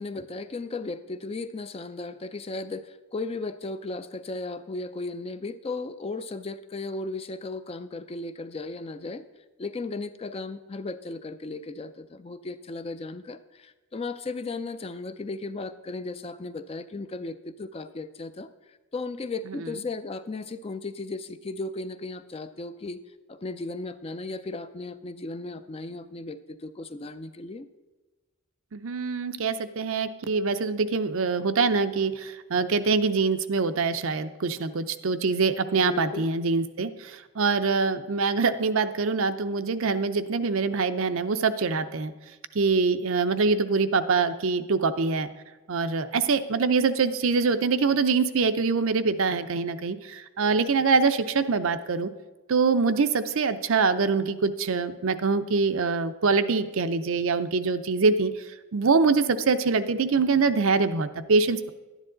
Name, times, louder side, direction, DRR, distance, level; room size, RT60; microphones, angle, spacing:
voice 1, 0.0-9.2 9.6-23.0 23.3-27.7 35.9-36.3, left 3 dB, 25° left, 11 dB, 0.4 m, -35 dB
voice 2, 28.7-42.1 42.5-45.3 45.7-52.1 52.5-58.3 58.7-61.7, right 4 dB, 65° right, 10 dB, 0.6 m, -24 dB
11.5 x 10.0 x 3.8 m, 1.2 s
head